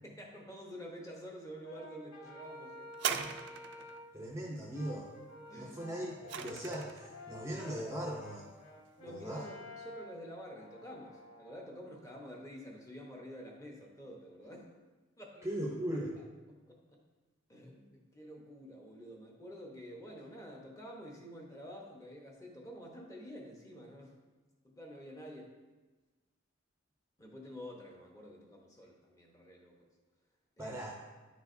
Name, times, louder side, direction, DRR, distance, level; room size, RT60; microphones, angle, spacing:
voice 1, 0.0-2.9 3.8-3.9 5.5-6.0 9.0-14.7 15.2-15.5 16.7-17.0 17.5-24.2 24.6-25.5 27.2-29.9 30.6-30.8, equal, 15° left, -1 dB, 0.9 m, -49 dB
Brass instrument, 1.6-4.1 4.7-11.7, left 1 dB, 75° left, 1.6 m, -51 dB
sound 1, 2.9-4.0 5.7-7.1 7.9-8.0, right 8 dB, 55° right, 0.4 m, -38 dB
voice 2, 4.1-5.1 5.6-8.5 9.1-9.5 15.4-16.2 30.6-31.0, right 1 dB, 15° right, -2 dB, 0.6 m, -39 dB
9.8 x 4.6 x 2.6 m, 1.2 s
head